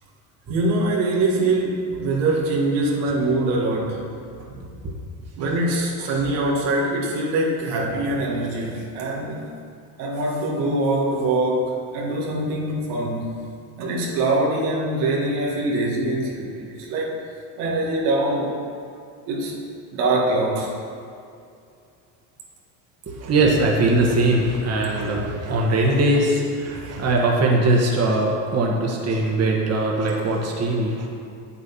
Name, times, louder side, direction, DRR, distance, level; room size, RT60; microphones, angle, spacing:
voice 1, 0.5-4.0 5.4-9.4 10.0-13.3 13.8-17.1 17.6-18.5 19.3-19.5 19.9-20.7 26.7-27.0, right 2 dB, 85° right, -3 dB, 2.1 m, -23 dB
voice 2, 23.1-31.1, right 2 dB, 35° right, -1 dB, 1.6 m, -21 dB
8.1 x 7.2 x 5.5 m, 2.4 s
supercardioid pair, 100°, 44 cm